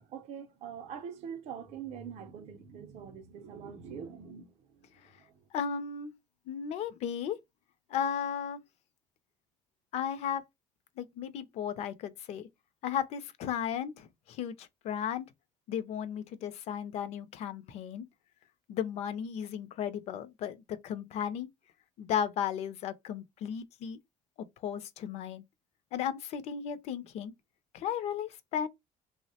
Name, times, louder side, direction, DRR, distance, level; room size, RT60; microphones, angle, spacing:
voice 1, 0.0-5.5, right 7 dB, 50° right, 0.5 m, -44 dB
voice 2, 5.5-6.1 6.5-7.4 7.9-8.6 9.9-10.4 11.0-12.5 12.8-15.3 15.7-18.1 18.7-21.5 22.0-24.0 24.4-25.4 25.9-27.3 27.7-28.7, left 8 dB, 50° left, 0.4 m, -35 dB
3.3 x 2.0 x 2.7 m
cardioid pair, 175°, 14 cm